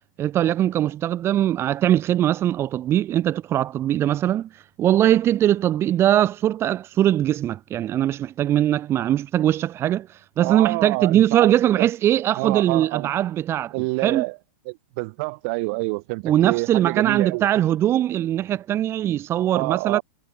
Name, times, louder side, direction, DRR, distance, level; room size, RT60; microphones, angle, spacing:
voice 1, 0.2-13.7 14.0-14.2 16.2-20.0, right 12 dB, 30° right, 3.2 m, -21 dB
voice 2, 10.4-11.5 11.8-11.9 12.4-13.1 13.7-14.4 14.7-17.5 19.5-20.0, right 30 dB, 50° right, 7.6 m, -27 dB
hypercardioid pair, 105°, 8 cm